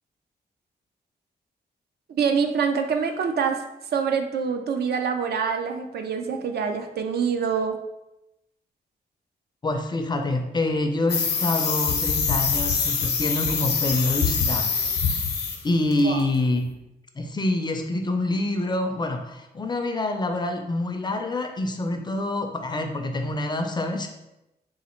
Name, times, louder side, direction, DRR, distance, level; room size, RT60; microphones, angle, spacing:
voice 1, 2.1-3.6 3.9-7.8 16.0-16.2, right 6 dB, 70° right, 6 dB, 0.5 m, -25 dB
voice 2, 9.6-14.7 15.6-16.6 17.2-24.1, left 2 dB, 25° left, 4 dB, 0.4 m, -26 dB
sound 1, 11.1-15.6 15.9-16.2, left 5 dB, 75° left, 0.7 m, -24 dB
4.0 x 2.5 x 4.2 m, 0.92 s
wide cardioid pair, 150°, 17 cm